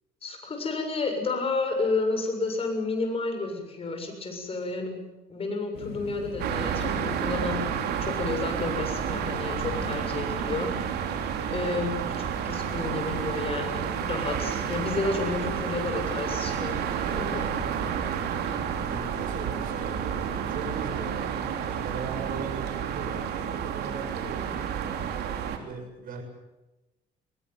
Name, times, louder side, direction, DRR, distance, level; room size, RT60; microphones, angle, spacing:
voice 1, 0.2-5.0 5.3-11.0 11.5-12.0 12.4-17.5, left 3 dB, 35° left, 5 dB, 7.1 m, -31 dB
sound 1, 5.7-20.4, left 6 dB, 75° left, 4.1 m, -45 dB
sound 2, 6.4-25.6, right 8 dB, 75° right, 3.4 m, -30 dB
voice 2, 18.8-20.2 20.5-21.3 21.6-24.5 25.6-26.2, right 4 dB, 55° right, 4 dB, 7.4 m, -39 dB
22.5 x 18.5 x 9.5 m, 1.0 s
cardioid pair, 110°, 17 cm